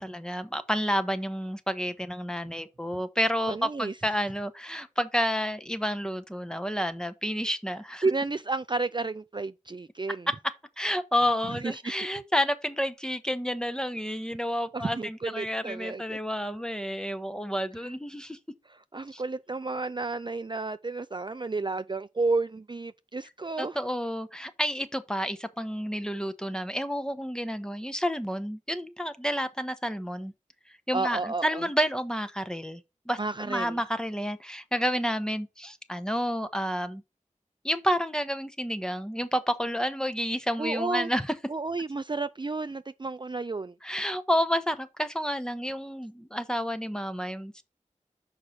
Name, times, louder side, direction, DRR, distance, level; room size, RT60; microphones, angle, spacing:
voice 1, 0.0-8.1 10.3-18.4 19.1-19.2 23.6-30.3 30.9-32.8 33.1-33.2 33.5-37.0 37.6-41.3 43.8-47.6, equal, 5° left, 0.9 m, -30 dB
voice 2, 3.5-3.9 8.0-10.3 11.5-11.9 14.7-16.2 18.7-23.8 30.9-31.6 33.2-33.8 40.6-41.1 41.5-43.7, right 3 dB, 35° right, 0.3 m, -31 dB
6.5 x 5.1 x 4.2 m
wide cardioid pair, 45°, 13 cm